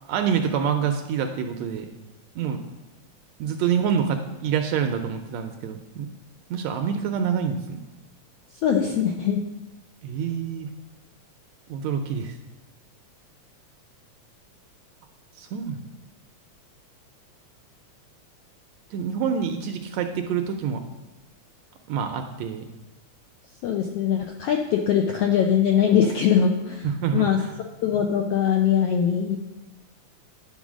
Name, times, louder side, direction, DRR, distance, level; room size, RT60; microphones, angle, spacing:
voice 1, 0.0-1.9 2.3-2.6 3.4-6.1 6.5-7.8 10.0-10.7 11.7-12.4 15.4-15.8 18.9-20.8 21.9-22.7 26.8-27.5, right 7 dB, 80° right, 5 dB, 1.6 m, -26 dB
voice 2, 8.6-9.4 23.6-26.9 27.1-27.4 27.8-29.4, left 8 dB, 85° left, 2 dB, 1.4 m, -21 dB
10.5 x 4.0 x 6.1 m, 1.0 s
omnidirectional pair, 3.5 m